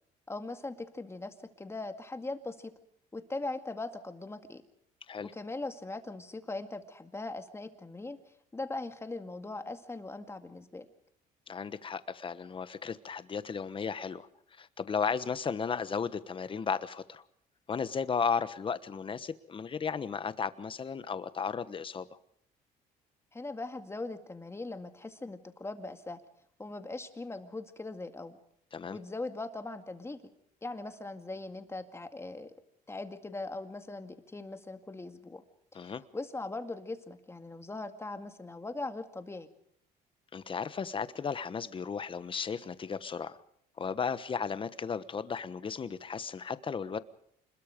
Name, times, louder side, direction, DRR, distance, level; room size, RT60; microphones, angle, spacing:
voice 1, 0.3-2.7 3.1-4.6 5.2-8.2 8.5-10.9 23.3-26.2 26.6-28.4 28.9-30.2 30.6-32.5 32.9-35.4 35.8-39.5, left 2 dB, 15° left, 7 dB, 2.1 m, -40 dB
voice 2, 11.5-17.2 17.7-22.2 28.7-29.0 35.7-36.0 40.3-43.4 43.8-47.0, left 6 dB, 30° left, 14 dB, 1.2 m, -35 dB
26.5 x 21.5 x 5.2 m, 0.71 s
cardioid pair, 110°, 17 cm